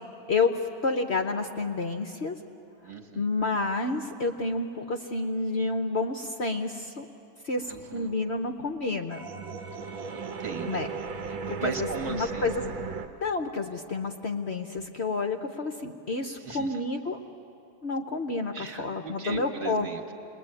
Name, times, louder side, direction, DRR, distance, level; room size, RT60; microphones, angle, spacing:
voice 1, 0.3-2.4 3.2-7.0 7.4-9.2 10.7-10.9 11.5-12.6 13.2-17.2 17.8-19.9, left 3 dB, 50° left, 5 dB, 0.8 m, -29 dB
voice 2, 2.8-3.2 7.7-8.1 10.1-10.9 11.6-12.5 16.4-16.8 18.5-20.1, right 5 dB, 35° right, 4 dB, 1.8 m, -38 dB
sound 1, 7.6-13.1, right 5 dB, 75° right, 1.8 m, -36 dB
28.5 x 21.5 x 8.9 m, 2.9 s
omnidirectional pair, 2.2 m